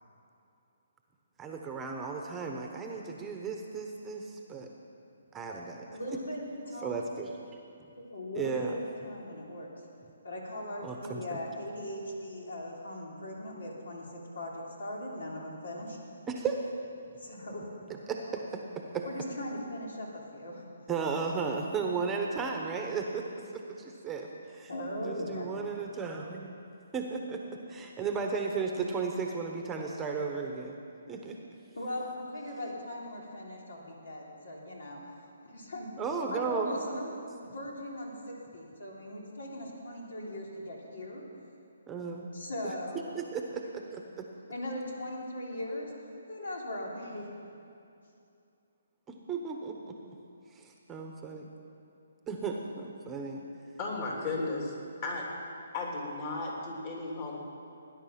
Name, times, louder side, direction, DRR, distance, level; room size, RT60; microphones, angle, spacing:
voice 1, 1.4-4.7 5.3-6.2 6.8-7.3 8.3-8.8 10.8-11.4 16.3-16.6 18.1-18.2 18.9-19.0 20.9-23.3 23.5-24.7 25.0-26.5 26.9-27.4 27.7-30.8 31.1-31.4 36.0-37.0 41.9-42.3 42.6-42.7 43.1-44.3 49.3-50.0 50.5-51.5 52.3-53.4, right 5 dB, 10° right, 2 dB, 1.0 m, -35 dB
voice 2, 5.9-7.1 8.0-9.7 10.2-16.0 17.1-17.7 19.0-20.6 24.7-25.5 31.8-35.0 35.4-35.9 36.3-41.2 42.3-43.2 44.5-45.9 46.3-47.3, left 1 dB, 80° left, -2 dB, 3.3 m, -39 dB
voice 3, 53.8-54.7 55.0-55.3 55.7-57.4, left 3 dB, 35° left, -2 dB, 3.2 m, -34 dB
18.5 x 10.5 x 5.9 m, 2.6 s
hypercardioid pair, 155°, 0 cm